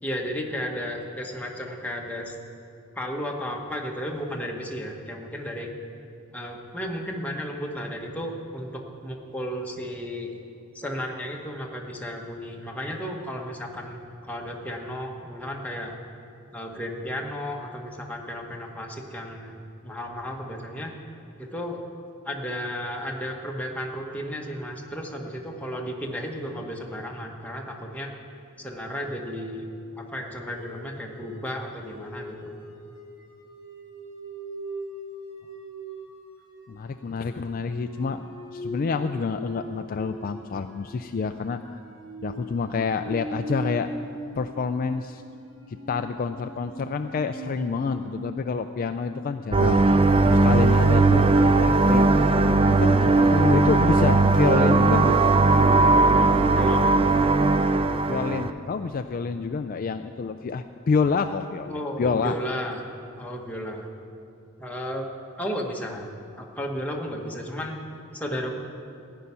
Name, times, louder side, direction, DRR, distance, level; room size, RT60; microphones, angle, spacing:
voice 1, 0.0-2.3 2.9-5.7 6.3-10.3 10.7-15.9 16.5-20.9 21.4-21.8 22.2-28.1 28.6-29.7 30.0-32.6 47.5-47.9 56.5-57.1 61.7-62.8 63.2-63.9 64.6-65.1 65.4-66.1 66.4-67.8 68.1-68.6, equal, 5° left, -1 dB, 1.2 m, -34 dB
sound 1, 30.4-48.4, equal, 65° right, 2.9 m, -40 dB
voice 2, 36.7-41.8 42.2-43.9 44.3-45.2 45.7-52.1 52.7-55.3 58.1-62.4, left 5 dB, 40° left, 8 dB, 0.3 m, -28 dB
sound 2, 49.5-58.5, right 3 dB, 25° right, 0.4 m, -18 dB
15.5 x 5.7 x 9.8 m, 2.6 s
head